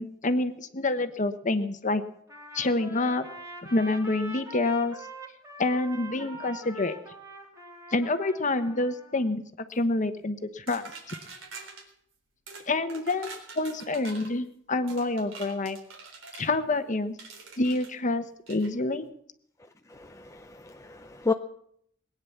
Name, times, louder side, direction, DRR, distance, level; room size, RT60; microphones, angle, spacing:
voice 1, 0.0-2.0 2.5-3.2 3.7-4.9 5.6-6.9 7.9-9.4 9.7-11.1 12.7-13.3 13.6-15.8 16.3-17.1 17.6-19.1, left 2 dB, 40° left, 10 dB, 1.1 m, -27 dB
Trumpet, 2.3-9.2, right 1 dB, 15° right, 3.0 m, -44 dB
sound 1, 10.7-11.8 12.5-12.6 12.9-14.3 14.9-16.5 17.2-17.9 18.5-18.7, right 4 dB, 90° right, 3.9 m, -44 dB
voice 2, 19.9-21.3, left 4 dB, 15° left, 5 dB, 0.5 m, -32 dB
20.5 x 9.8 x 7.2 m, 0.70 s
head